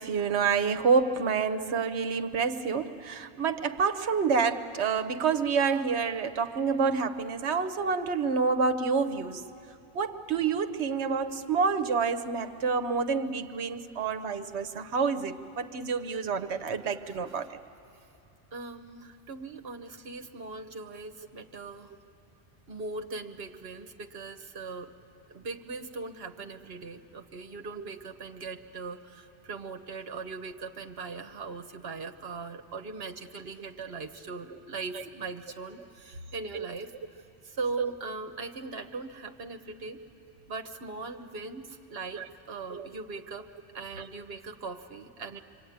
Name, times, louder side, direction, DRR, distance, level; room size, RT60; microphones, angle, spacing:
voice 1, 0.0-9.5 9.9-17.5 34.9-35.1 36.5-36.7 37.8-37.9 42.1-42.3 42.7-42.9 44.0-44.1, right 5 dB, 80° right, 8 dB, 1.2 m, -28 dB
voice 2, 17.1-17.5 18.5-21.9 22.7-24.9 25.3-40.0 40.5-42.2 42.5-43.5 43.7-45.4, right 4 dB, 65° right, 6 dB, 1.4 m, -40 dB
26.5 x 24.0 x 9.4 m, 2.6 s
omnidirectional pair, 1.1 m